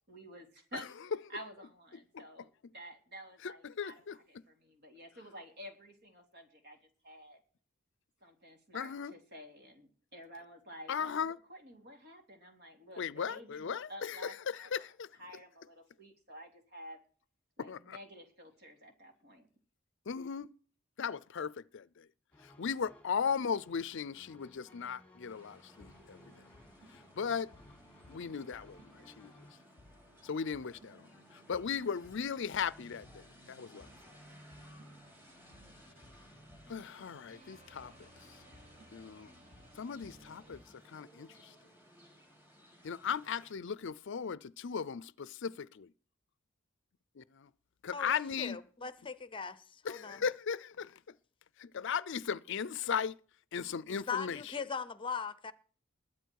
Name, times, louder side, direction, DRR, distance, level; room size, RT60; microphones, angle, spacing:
voice 1, 0.1-0.9 1.3-6.8 7.0-7.4 8.2-14.9 15.2-17.0 17.6-19.5, equal, 55° right, 3.4 m, -51 dB
voice 2, 3.4-4.2 8.7-9.1 10.9-11.4 13.0-15.1 17.6-18.0 20.1-20.5 21.0-22.1 22.4-26.3 27.2-27.5 28.1-29.3 30.2-33.9 36.7-38.1 38.9-39.3 39.8-40.6 40.9-41.5 42.8-45.9 47.2-47.5 47.8-48.6 49.8-51.0 51.6-53.2 53.5-54.5, left 6 dB, 65° left, 0.5 m, -37 dB
sound 1, 22.3-29.5, left 1 dB, 5° left, 1.9 m, -60 dB
sound 2, 25.3-43.5, equal, 10° right, 3.9 m, -59 dB
sound 3, 25.8-40.6, equal, 35° right, 2.1 m, -61 dB
voice 3, 47.9-50.2 54.1-55.5, left 6 dB, 25° left, 0.7 m, -40 dB
21.0 x 8.6 x 4.7 m
head